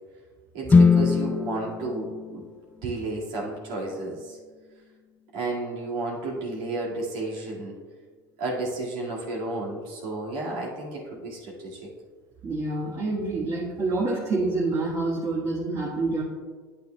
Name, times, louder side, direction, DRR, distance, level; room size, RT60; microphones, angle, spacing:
voice 1, 0.5-2.4 2.8-4.4 5.3-7.8 8.4-11.8, right 2 dB, 70° right, -5 dB, 2.1 m, -32 dB
sound 1, 0.7-4.7, left 4 dB, 15° left, 0.3 m, -24 dB
voice 2, 12.4-16.2, right 3 dB, 30° right, -4 dB, 1.5 m, -27 dB
9.2 x 8.1 x 2.3 m, 1.5 s
hypercardioid pair, 95°, 11 cm